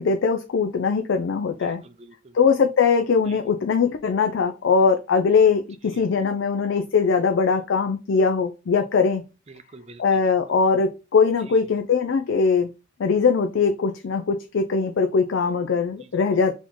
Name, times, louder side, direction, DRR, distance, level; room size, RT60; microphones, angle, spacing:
voice 1, 0.0-1.8 2.3-9.2 10.0-12.7 13.0-16.5, left 5 dB, 65° left, 0.4 m, -21 dB
voice 2, 1.6-2.4 3.3-3.4 5.8-6.0 9.5-10.2 11.5-11.6 16.0-16.2, right 3 dB, 30° right, 0.5 m, -47 dB
4.2 x 2.9 x 3.7 m
head